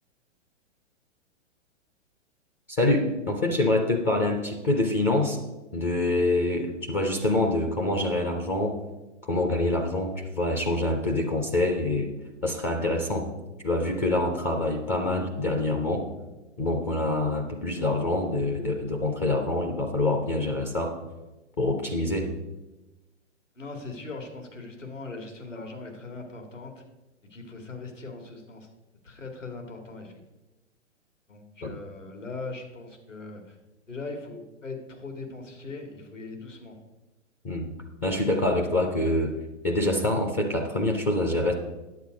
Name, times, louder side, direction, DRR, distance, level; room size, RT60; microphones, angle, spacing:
voice 1, 2.7-5.4 5.7-8.8 9.2-12.1 12.4-13.3 13.6-16.1 16.6-21.0 21.6-22.3 31.6-31.8 37.4-37.7 38.0-39.4 39.6-41.5, left 2 dB, 10° left, 1 dB, 0.4 m, -26 dB
voice 2, 23.6-26.8 27.3-28.7 29.0-30.2 31.3-33.6 33.9-36.8, left 3 dB, 90° left, 3 dB, 2.3 m, -40 dB
9.5 x 8.0 x 5.1 m, 1.1 s
figure-of-eight pair, 115°, 37 cm